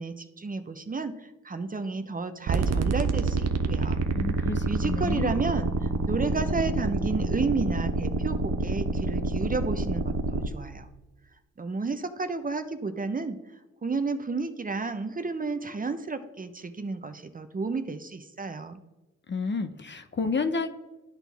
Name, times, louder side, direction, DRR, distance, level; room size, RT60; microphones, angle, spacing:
voice 1, 0.0-4.0 4.6-10.9 11.6-13.4 13.8-18.8, right 3 dB, 25° right, 9 dB, 0.7 m, -32 dB
sound 1, 2.5-10.5, right 3 dB, 55° right, 0.8 m, -27 dB
voice 2, 4.1-5.3 19.3-20.7, left 4 dB, 35° left, 9 dB, 0.8 m, -30 dB
12.0 x 4.1 x 3.4 m, 1.1 s
supercardioid pair, 50°, 32 cm